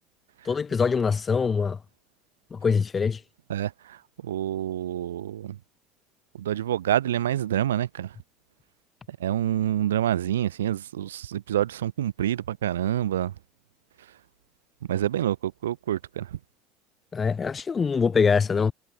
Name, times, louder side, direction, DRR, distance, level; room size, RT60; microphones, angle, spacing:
voice 1, 0.4-1.8 2.5-3.2 17.1-18.7, left 5 dB, 30° left, 5.3 m, -23 dB
voice 2, 3.5-5.6 6.3-8.2 9.1-13.3 14.9-16.4, right 11 dB, 90° right, 3.9 m, -27 dB
hypercardioid pair, 80°, 0 cm